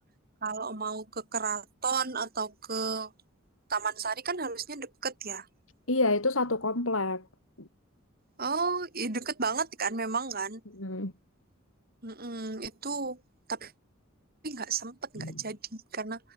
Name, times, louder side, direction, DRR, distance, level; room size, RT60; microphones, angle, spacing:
voice 1, 0.4-3.1 3.7-5.5 8.4-10.6 12.0-13.2 13.5-13.7 14.4-16.2, right 4 dB, 45° right, 4.6 m, -33 dB
voice 2, 5.9-7.2 7.6-7.7 10.8-11.1 15.2-15.4, left 2 dB, 75° left, 5.1 m, -28 dB
head